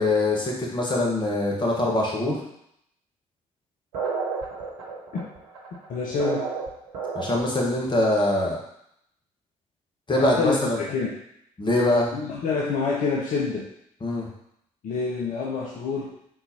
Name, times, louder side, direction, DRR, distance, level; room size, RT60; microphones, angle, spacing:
voice 1, 0.0-2.4 7.1-8.6 10.1-10.8 11.6-12.1 14.0-14.3, left 1 dB, 25° left, -2 dB, 1.3 m, -23 dB
sound 1, 3.9-7.6, right 4 dB, 70° right, 0.9 m, -31 dB
voice 2, 5.9-6.5 10.2-11.2 12.1-13.7 14.8-16.2, left 4 dB, 50° left, -3 dB, 0.7 m, -27 dB
3.9 x 3.8 x 2.8 m, 0.75 s
figure-of-eight pair, 45°, 18 cm